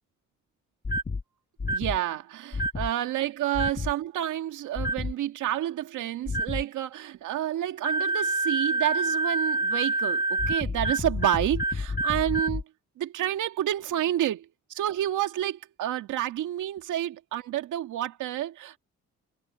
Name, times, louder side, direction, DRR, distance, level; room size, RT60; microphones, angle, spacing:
sound 1, 0.8-1.2 1.6-2.0 2.5-2.9 3.5-3.9 4.8-5.1 6.3-6.6 7.8-12.6, right 1 dB, 30° left, 1.8 m, -27 dB
voice 1, 1.7-12.6 13.0-14.5 14.7-18.8, right 12 dB, 80° right, 2.1 m, -29 dB
cardioid pair, 90°, 30 cm